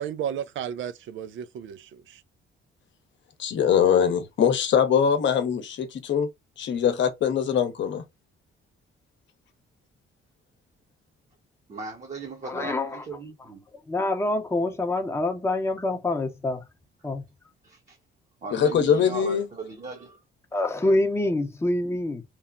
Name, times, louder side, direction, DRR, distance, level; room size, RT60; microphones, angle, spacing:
voice 1, 0.0-2.2, right 9 dB, 75° right, 0.5 m, -33 dB
voice 2, 3.4-6.3 6.6-8.0 18.5-19.5, left 8 dB, 65° left, 0.8 m, -22 dB
voice 3, 11.7-13.6 17.6-18.0 18.4-20.2, right 3 dB, 35° right, 0.9 m, -38 dB
voice 4, 12.4-13.0 13.4-13.5 13.9-16.7 17.0-17.3 20.5-22.2, left 2 dB, 15° left, 0.7 m, -26 dB
3.1 x 2.1 x 2.4 m
cardioid pair, 90°, 20 cm